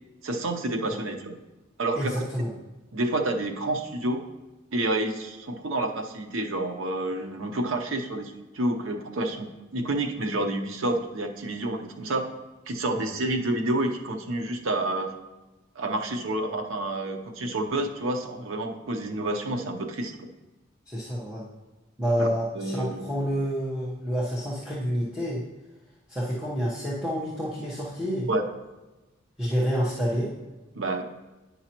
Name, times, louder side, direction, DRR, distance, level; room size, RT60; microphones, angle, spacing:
voice 1, 0.2-1.4 1.8-2.2 2.9-4.2 4.7-12.3 12.7-15.1 15.8-20.1 22.2-22.3 22.5-23.0 28.3-28.4 30.7-31.0, right 2 dB, 85° right, 4 dB, 0.7 m, -29 dB
voice 2, 2.0-2.5 13.0-13.1 20.9-21.5 22.0-25.4 26.1-28.3 29.4-30.3, equal, 5° right, -9 dB, 1.0 m, -28 dB
9.8 x 5.4 x 2.9 m, 1.1 s
head